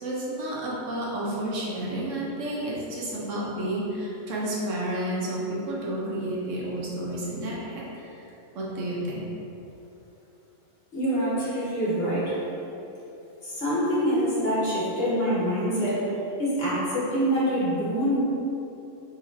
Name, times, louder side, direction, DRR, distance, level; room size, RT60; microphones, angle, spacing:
voice 1, 0.0-8.3 8.5-9.2, right 1 dB, 70° right, -5 dB, 1.1 m, -31 dB
voice 2, 10.9-12.4 13.4-18.2, equal, 50° left, -9 dB, 1.3 m, -25 dB
5.3 x 2.9 x 2.6 m, 2.9 s
omnidirectional pair, 1.4 m